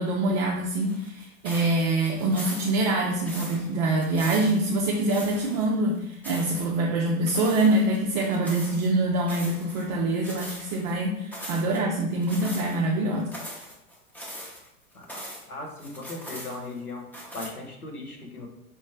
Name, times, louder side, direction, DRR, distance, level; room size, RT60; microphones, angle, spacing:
voice 1, 0.0-13.3, right 2 dB, 30° right, 0 dB, 0.5 m, -25 dB
sound 1, 0.8-5.7 6.0-6.7 7.3-8.9 9.3-9.9 10.2-10.9 11.3-11.8 12.2-12.8 13.2-15.5 15.8-16.8 17.1-17.5, equal, 5° left, 0.7 m, -41 dB
voice 2, 15.5-17.0 17.3-18.5, left 2 dB, 85° left, 0 dB, 1.1 m, -37 dB
5.0 x 3.1 x 3.2 m, 0.79 s
figure-of-eight pair, 90°, 43 cm